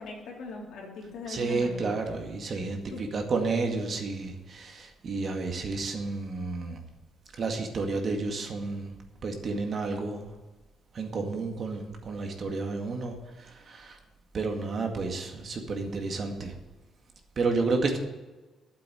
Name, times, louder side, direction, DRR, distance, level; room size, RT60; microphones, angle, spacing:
voice 1, 0.0-2.0 2.9-3.1, left 3 dB, 75° left, -2 dB, 3.4 m, -40 dB
voice 2, 1.3-6.8 7.4-8.9 9.2-10.3 10.9-14.0 14.3-16.5 17.4-18.0, right 3 dB, 50° right, 3 dB, 2.0 m, -31 dB
9.1 x 7.6 x 9.2 m, 1.2 s
cardioid pair, 90°, 0 cm